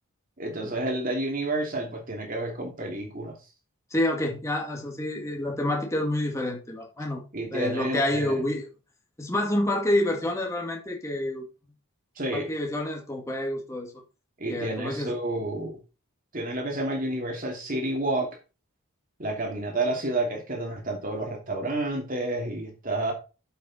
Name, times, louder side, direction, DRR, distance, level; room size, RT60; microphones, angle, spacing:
voice 1, 0.4-3.3 7.3-8.4 12.2-12.5 14.4-15.8 16.3-18.3 19.2-23.1, right 2 dB, 40° right, 2.7 m, -30 dB
voice 2, 3.9-7.2 7.5-8.7 9.2-11.5 12.3-13.9 14.5-15.1, left 1 dB, 15° left, 1.9 m, -28 dB
7.6 x 6.8 x 4.2 m
head